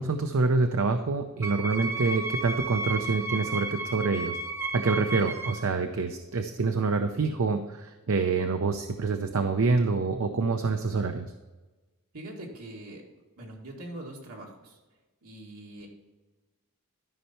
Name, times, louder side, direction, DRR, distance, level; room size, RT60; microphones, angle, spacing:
voice 1, 0.0-4.4 4.7-11.3, right 4 dB, 65° right, 6 dB, 0.6 m, -26 dB
Wind instrument woodwind instrument, 1.4-5.7, right 2 dB, 10° right, 0.7 m, -33 dB
voice 2, 12.1-13.0 13.4-14.8 15.2-15.9, right 1 dB, 85° right, -2 dB, 2.1 m, -42 dB
13.0 x 5.6 x 4.3 m, 1.2 s
head